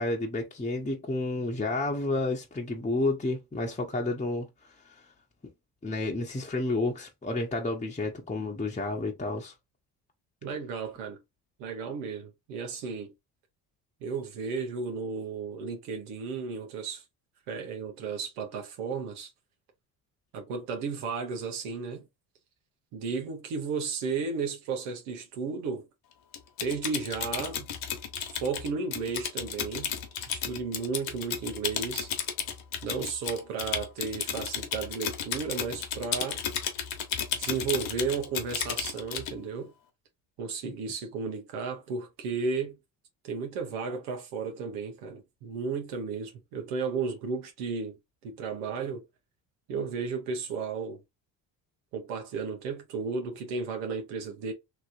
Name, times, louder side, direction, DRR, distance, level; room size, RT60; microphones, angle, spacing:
voice 1, 0.0-4.5 4.9-5.0 5.8-9.5, left 2 dB, 15° left, 0.9 m, -30 dB
voice 2, 10.4-11.2 11.6-13.1 14.0-17.0 17.5-19.3 20.3-22.1 22.9-25.9 26.6-27.7 28.4-30.0 30.3-32.1 32.8-36.4 37.4-39.7 40.4-42.8 43.2-48.0 48.2-49.0 49.7-51.0 51.9-54.5, right 5 dB, 90° right, 1.0 m, -34 dB
Typing, 26.3-39.3, left 8 dB, 70° left, 1.1 m, -33 dB
3.0 x 2.9 x 2.5 m
supercardioid pair, 60°, 48 cm